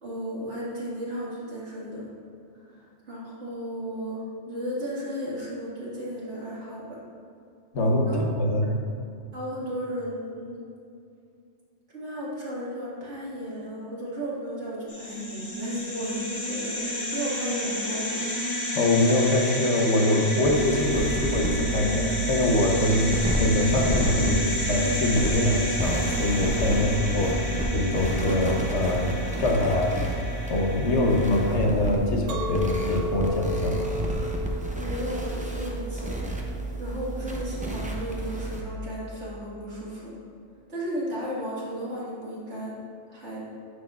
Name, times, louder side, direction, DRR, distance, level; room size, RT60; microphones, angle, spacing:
voice 1, 0.0-2.1 2.5-7.0 8.1-8.2 9.3-10.6 11.9-18.2 34.8-36.2 36.8-40.2 40.7-42.8 43.1-43.5, equal, 70° right, -7 dB, 2.2 m, -34 dB
voice 2, 7.7-8.1 8.4-8.7 18.7-33.9, left 1 dB, 70° left, 0 dB, 1.2 m, -24 dB
sound 1, 14.9-31.5, equal, 35° left, 1.2 m, -31 dB
sound 2, 20.4-38.6, right 1 dB, 10° right, 0.4 m, -31 dB
Chink clink, 32.3-37.5, left 2 dB, 90° right, 1.0 m, -34 dB
9.3 x 6.4 x 2.4 m, 2.5 s
omnidirectional pair, 1.2 m